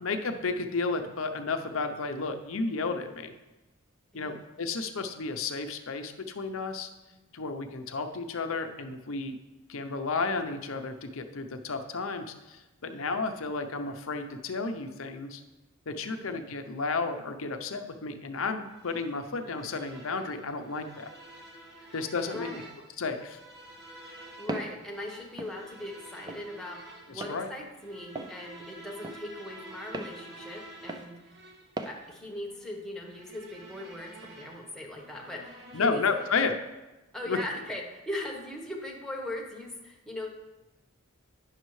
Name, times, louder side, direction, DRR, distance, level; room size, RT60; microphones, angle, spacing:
voice 1, 0.0-3.3 4.1-6.9 7.3-9.4 9.7-15.4 15.9-21.1 21.9-22.6 23.0-23.4 27.1-27.5 35.7-36.6 37.3-37.4, left 4 dB, 70° left, 6 dB, 0.7 m, -32 dB
voice 2, 4.1-4.5 7.1-7.2 12.9-13.1 16.0-16.3 21.8-22.0 22.2-22.7 24.0-26.8 27.1-31.2 31.8-36.0 37.1-40.3, left 1 dB, ahead, -2 dB, 1.1 m, -39 dB
sound 1, 18.7-36.7, right 2 dB, 55° right, 1.3 m, -50 dB
Walk footsteps, 24.5-24.8 25.4-25.6 26.3-26.5 27.2-27.4 28.2-28.4 29.0-29.2 29.9-30.2 30.9-31.1 31.8-32.0, right 2 dB, 20° right, 0.4 m, -37 dB
9.8 x 6.6 x 3.2 m, 1.1 s
head